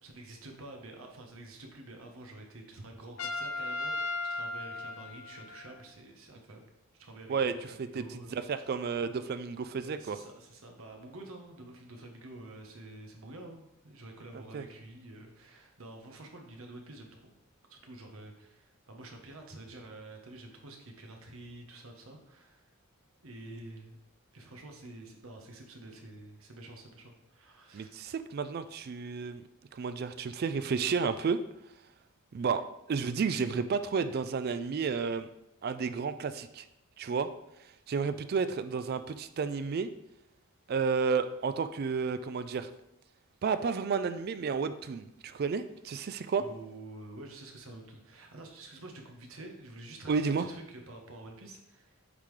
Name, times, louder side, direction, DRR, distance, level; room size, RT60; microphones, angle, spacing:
voice 1, 0.0-6.6 6.9-7.5 7.9-8.4 9.8-17.2 17.7-22.6 23.2-24.0 24.3-27.9 46.4-52.0, right 2 dB, 65° right, 2 dB, 1.0 m, -48 dB
Trumpet, 3.2-5.9, left 2 dB, 75° left, 0.5 m, -36 dB
voice 2, 7.3-10.2 14.5-14.7 27.7-29.4 29.7-31.4 32.3-32.6 32.9-35.3 35.6-36.6 37.0-37.3 37.9-39.9 40.7-42.7 43.4-46.4 50.1-50.5, right 5 dB, 45° right, 12 dB, 0.3 m, -31 dB
8.3 x 3.7 x 3.2 m, 0.85 s
head